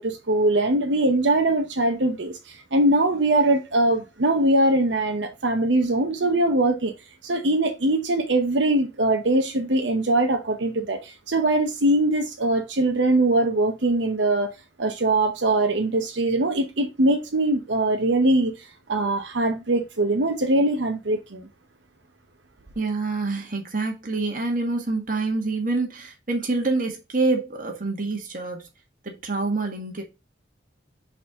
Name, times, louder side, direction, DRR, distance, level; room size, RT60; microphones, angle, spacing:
voice 1, 0.0-6.9 7.2-14.5 14.8-18.5 18.9-21.5, right 2 dB, 80° right, 0.9 m, -22 dB
voice 2, 22.7-28.6 29.0-30.0, right 3 dB, 45° right, 1.6 m, -26 dB
4.3 x 4.2 x 5.3 m
head